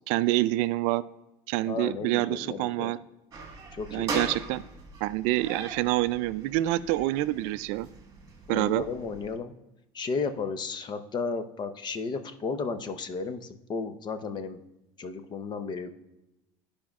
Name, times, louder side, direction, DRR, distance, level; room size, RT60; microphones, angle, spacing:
voice 1, 0.1-1.0 1.5-3.0 3.9-4.6 5.0-7.9 8.5-8.8, right 17 dB, 70° right, 15 dB, 0.4 m, -27 dB
voice 2, 1.6-2.9 3.7-4.4 8.5-9.5 9.9-14.6 15.0-15.9, left 4 dB, 35° left, 9 dB, 0.7 m, -34 dB
sound 1, 3.3-9.4, right 3 dB, 30° right, 1.7 m, -40 dB
14.0 x 5.1 x 2.4 m, 0.94 s
supercardioid pair, 110°, 13 cm